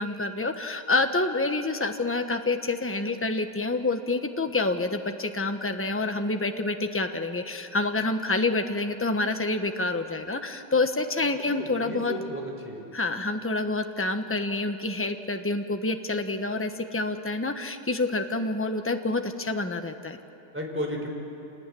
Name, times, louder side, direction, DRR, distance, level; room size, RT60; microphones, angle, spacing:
voice 1, 0.0-12.1 12.9-20.2, left 2 dB, 10° left, 6 dB, 0.8 m, -27 dB
voice 2, 11.6-12.9 20.5-21.1, equal, 5° right, 0 dB, 4.3 m, -33 dB
27.5 x 18.5 x 10.0 m, 2.8 s
omnidirectional pair, 2.1 m